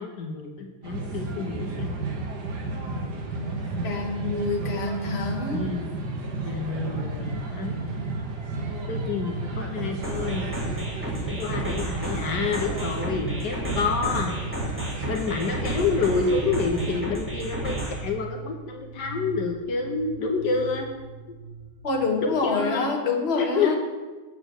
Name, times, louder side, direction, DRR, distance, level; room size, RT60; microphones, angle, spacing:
voice 1, 0.0-1.9 5.5-6.1 6.5-7.8 8.9-10.5 11.2-14.3 15.0-20.9 22.2-22.9 23.4-23.8, left 4 dB, 70° left, 3 dB, 1.6 m, -28 dB
sound 1, 0.8-17.0, right 2 dB, 65° right, 1.9 m, -33 dB
voice 2, 3.8-5.7 21.8-23.8, left 3 dB, 40° left, 2 dB, 1.5 m, -26 dB
sound 2, 7.2-22.5, right 4 dB, 35° right, 1.2 m, -40 dB
sound 3, 10.0-18.0, equal, 5° right, 2.3 m, -33 dB
8.4 x 7.7 x 6.4 m, 1.3 s
omnidirectional pair, 1.9 m